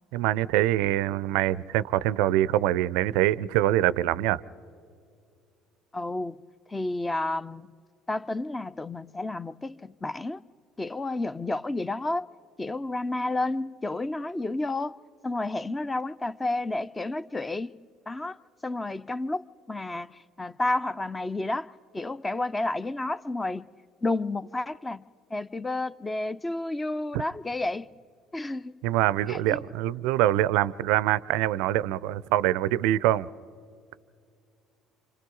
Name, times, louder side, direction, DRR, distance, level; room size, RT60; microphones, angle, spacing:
voice 1, 0.1-4.4 27.1-27.2 28.8-33.3, right 14 dB, 65° right, 0.4 m, -24 dB
voice 2, 5.9-6.4 6.7-7.7 8.1-10.4 10.8-12.3 12.6-15.0 15.2-17.7 18.1-18.4 18.6-23.7 24.0-25.0 25.3-27.9 28.3-28.8 29.3-29.6, left 2 dB, 20° left, 0.5 m, -31 dB
28.5 x 26.5 x 3.9 m
figure-of-eight pair, 55°, 0 cm